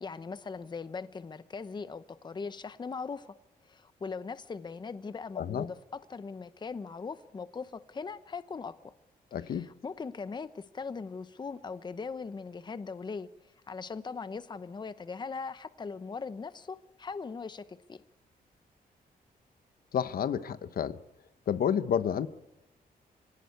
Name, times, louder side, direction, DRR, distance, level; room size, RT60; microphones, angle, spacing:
voice 1, 0.0-3.3 3.7-5.8 6.1-8.9 9.4-13.3 13.7-18.0, left 5 dB, 30° left, 12 dB, 0.8 m, -40 dB
voice 2, 5.4-5.7 9.3-9.7 19.9-21.0 21.5-22.3, left 8 dB, 70° left, 12 dB, 1.0 m, -30 dB
26.0 x 17.5 x 9.5 m, 1.0 s
wide cardioid pair, 130°, 16 cm